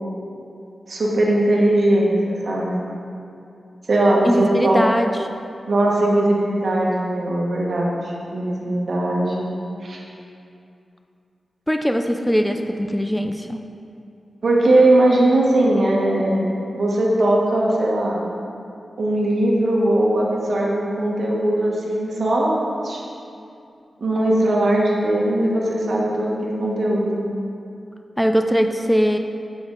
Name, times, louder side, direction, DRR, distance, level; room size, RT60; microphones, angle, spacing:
voice 1, 0.9-2.8 3.9-4.8 5.7-9.5 9.8-10.0 14.4-18.2 19.0-23.0 24.0-27.2, right 1 dB, 65° right, -3 dB, 1.0 m, -19 dB
voice 2, 4.2-5.3 11.7-13.6 28.2-29.2, equal, 5° left, 5 dB, 0.3 m, -20 dB
7.0 x 5.1 x 3.7 m, 2.6 s
wide cardioid pair, 80°, 0 cm